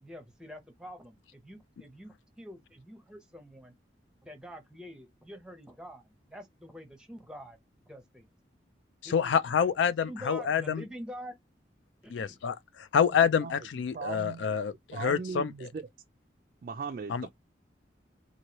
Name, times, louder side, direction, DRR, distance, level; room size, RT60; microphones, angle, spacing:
voice 1, 0.0-3.7 4.2-7.6 7.8-8.3 9.0-9.4 9.6-9.7 10.0-11.3 12.0-12.4, equal, 5° right, 0.7 m, -46 dB
voice 2, 9.0-10.8 12.1-15.5 17.1-17.3, left 7 dB, 85° left, 0.4 m, -27 dB
voice 3, 13.1-13.7 13.9-14.6 14.9-15.8 16.6-17.3, right 5 dB, 50° right, 0.3 m, -38 dB
2.9 x 2.7 x 2.9 m
head